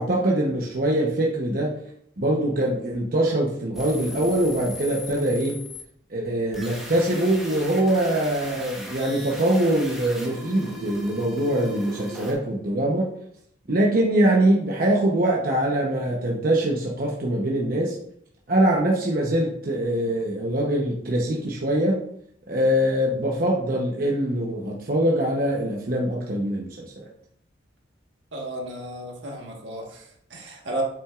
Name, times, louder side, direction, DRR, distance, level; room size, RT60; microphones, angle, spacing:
voice 1, 0.0-1.7 2.2-5.6 6.1-13.1 13.7-18.0 18.5-22.0 22.5-27.1, right 1 dB, 50° right, -2 dB, 0.9 m, -23 dB
sound 1, 3.7-5.8 6.5-12.3, left 1 dB, ahead, 1.2 m, -38 dB
voice 2, 28.3-30.8, right 1 dB, 80° right, 0 dB, 1.5 m, -34 dB
7.9 x 5.9 x 2.5 m, 0.71 s
head